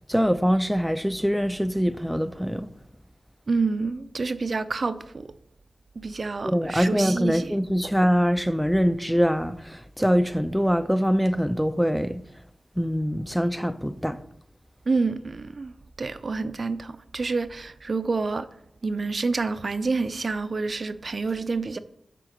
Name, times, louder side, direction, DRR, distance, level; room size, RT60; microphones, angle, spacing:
voice 1, 0.1-2.7 6.4-12.2 12.8-14.2, equal, ahead, 0.4 m, -23 dB
voice 2, 3.5-5.3 6.0-7.5 14.9-15.7 16.0-18.5 18.8-21.8, right 4 dB, 55° right, 0.5 m, -28 dB
7.5 x 3.7 x 6.6 m
cardioid pair, 70°, 0 cm